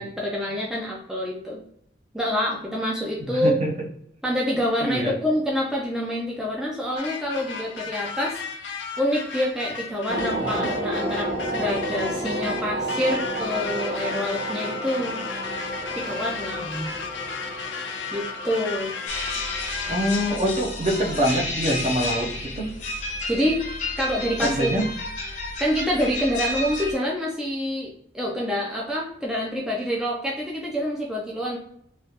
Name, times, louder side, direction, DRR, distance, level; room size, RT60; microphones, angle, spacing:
voice 1, 0.0-1.6 2.1-3.6 4.2-8.4 9.0-15.2 15.9-16.9 18.1-18.9 23.3-23.6 24.0-24.8 25.6-31.6, equal, 5° right, -3 dB, 0.4 m, -27 dB
voice 2, 3.2-3.7 4.8-5.2 10.4-10.7 19.9-22.7 24.4-24.8, equal, 40° right, 0 dB, 0.7 m, -25 dB
sound 1, 7.0-20.6, left 5 dB, 85° left, 0.6 m, -34 dB
sound 2, 10.1-21.1 21.4-21.7, right 1 dB, 80° right, 0.8 m, -32 dB
sound 3, 19.1-26.9, left 2 dB, 45° left, 0.8 m, -31 dB
3.2 x 2.3 x 2.8 m, 0.72 s
head